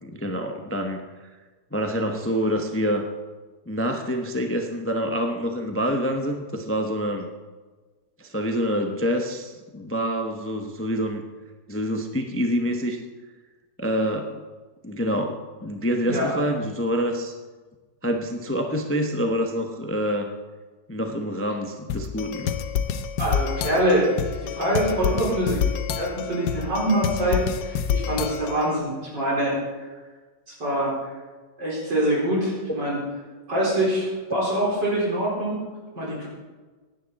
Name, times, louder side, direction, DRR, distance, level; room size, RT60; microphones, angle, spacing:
voice 1, 0.0-1.0 1.7-3.0 3.7-7.3 8.2-11.2 11.7-13.0 13.8-14.4 14.8-17.3 18.0-20.3 20.9-22.5, equal, 10° left, 3 dB, 0.6 m, -26 dB
sound 1, 21.9-28.7, left 7 dB, 75° left, 1.2 m, -28 dB
voice 2, 23.2-24.1 24.4-25.7 25.9-29.9 30.5-31.1 31.6-33.0 33.5-35.6 35.9-36.3, right 1 dB, 80° right, -5 dB, 5.1 m, -24 dB
16.0 x 10.5 x 4.1 m, 1.3 s
omnidirectional pair, 1.9 m